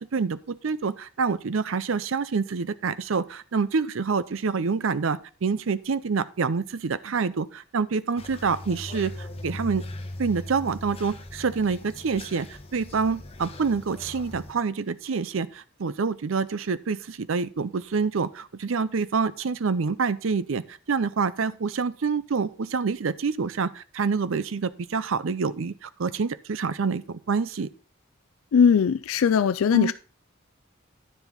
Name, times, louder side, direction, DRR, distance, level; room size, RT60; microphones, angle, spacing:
voice 1, 0.0-9.8 10.2-12.5 12.7-27.7 29.7-29.9, right 5 dB, 70° right, 0.6 m, -27 dB
sound 1, 8.2-14.5, left 1 dB, 30° left, 1.1 m, -39 dB
voice 2, 28.5-29.9, left 6 dB, 85° left, 0.4 m, -19 dB
10.0 x 7.1 x 3.8 m
head